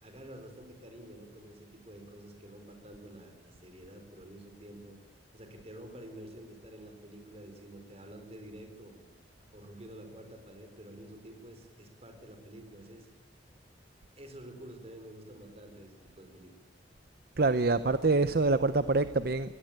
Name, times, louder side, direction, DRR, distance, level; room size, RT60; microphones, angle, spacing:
voice 1, 0.0-5.0 5.3-9.1 9.5-13.2 14.2-16.5, right 1 dB, 35° right, 6 dB, 4.2 m, -49 dB
voice 2, 17.4-19.5, right 3 dB, 55° right, 12 dB, 0.7 m, -26 dB
21.0 x 17.5 x 9.0 m, 1.2 s
head